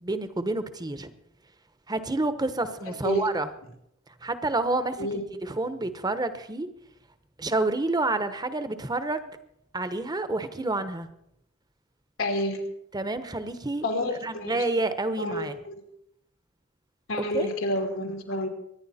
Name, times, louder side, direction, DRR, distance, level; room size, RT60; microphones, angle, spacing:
voice 1, 0.0-1.1 1.9-3.5 4.2-6.7 7.4-9.3 9.7-11.1 12.9-13.9 14.2-15.6 17.3-17.5, right 2 dB, 20° right, 11 dB, 1.0 m, -29 dB
voice 2, 2.7-3.3 5.0-5.2 12.2-12.6 13.8-14.7 15.2-15.8 17.1-18.5, left 1 dB, 85° left, 2 dB, 2.9 m, -30 dB
24.0 x 10.5 x 4.3 m, 0.77 s
head